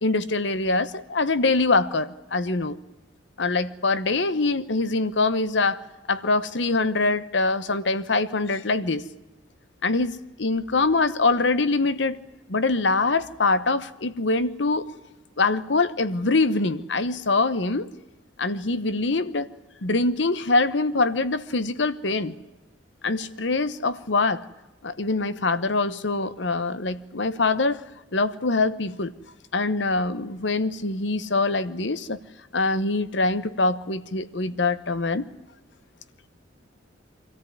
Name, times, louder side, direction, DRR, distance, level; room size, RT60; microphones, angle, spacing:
voice 1, 0.0-2.8 3.4-5.8 6.1-9.1 9.8-10.1 10.4-12.2 12.5-14.9 15.4-17.9 18.4-19.5 19.8-22.3 23.0-24.4 24.8-27.8 28.1-29.1 29.5-32.2 32.5-35.3, left 3 dB, 70° left, 1.0 m, -24 dB
25.5 x 14.5 x 9.4 m
head